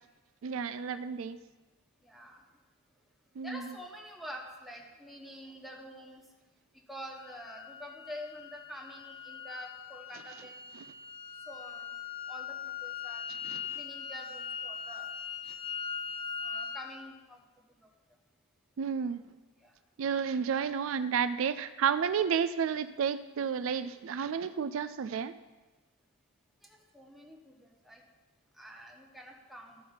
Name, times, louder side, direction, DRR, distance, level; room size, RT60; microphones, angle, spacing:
voice 1, 0.4-1.4 3.4-3.7 10.7-10.8 13.4-13.8 18.8-19.2 20.0-25.3, right 7 dB, 70° right, 12 dB, 0.4 m, -31 dB
voice 2, 2.0-2.4 3.4-6.2 6.9-10.6 11.5-11.9 12.3-13.2 13.7-15.1 16.4-17.4 19.6-19.7 26.7-28.0 28.6-29.8, equal, ahead, -1 dB, 1.2 m, -47 dB
sound 1, 7.2-16.8, left 7 dB, 25° left, 0.6 m, -41 dB
13.5 x 4.6 x 5.7 m, 1.2 s
head